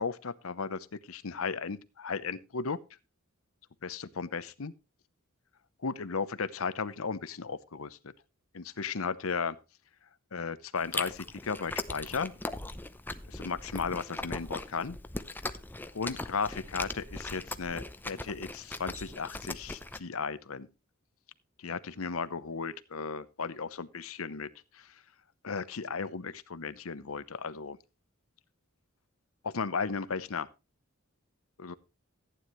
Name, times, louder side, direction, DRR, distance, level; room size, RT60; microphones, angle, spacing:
voice 1, 0.0-2.8 3.8-4.7 5.8-8.1 8.5-9.6 10.3-12.3 13.3-15.0 15.9-20.7 21.6-24.9 25.4-27.8 29.4-30.5 31.6-31.8, left 5 dB, 80° left, 0.8 m, -35 dB
Chewing mastication, 10.8-20.0, left 2 dB, 10° left, 0.6 m, -39 dB
14.5 x 9.5 x 3.1 m
head